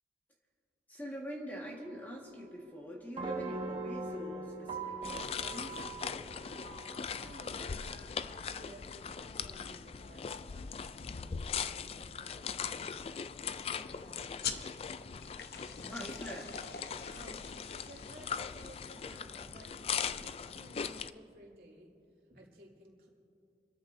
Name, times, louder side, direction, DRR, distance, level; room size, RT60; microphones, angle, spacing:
voice 1, 0.9-5.8 15.8-16.5, equal, 10° left, -2 dB, 1.6 m, -44 dB
sound 1, 1.8-7.9, right 3 dB, 30° right, 1.1 m, -42 dB
sound 2, 5.0-21.1, left 6 dB, 35° left, 0.3 m, -40 dB
voice 2, 6.9-13.2 13.6-14.8 17.1-21.9 22.3-23.1, right 1 dB, 55° right, -2 dB, 2.9 m, -56 dB
sound 3, 14.4-19.5, left 7 dB, 60° left, 0.8 m, -45 dB
30.0 x 13.5 x 2.7 m, 2.7 s
head